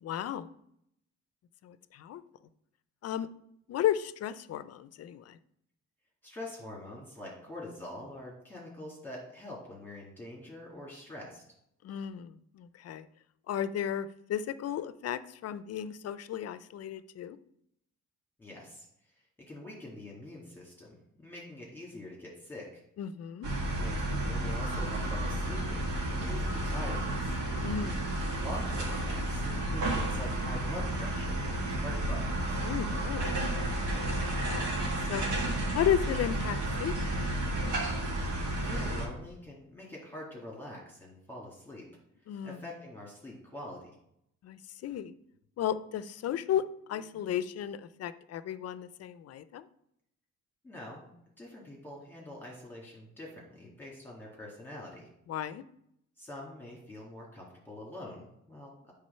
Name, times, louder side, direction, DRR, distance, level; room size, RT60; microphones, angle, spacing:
voice 1, 0.0-0.5 1.6-2.2 3.0-3.3 3.7-5.4 11.8-13.1 13.5-17.4 23.0-23.5 27.6-28.1 32.6-33.4 33.8-34.8 35.1-35.3 35.7-37.3 42.3-42.6 44.4-45.1 45.6-49.7 55.3-55.6, left 10 dB, 55° left, 14 dB, 0.5 m, -34 dB
voice 2, 6.2-11.4 18.4-18.9 19.5-22.8 23.8-25.9 26.1-27.4 28.4-32.6 38.3-41.9 42.4-43.9 50.6-51.1 51.4-55.1 56.2-58.9, left 1 dB, 5° left, -4 dB, 2.1 m, -45 dB
sound 1, 23.4-39.1, right 1 dB, 80° right, 1.8 m, -32 dB
7.5 x 3.6 x 5.5 m, 0.75 s
cardioid pair, 90°, 30 cm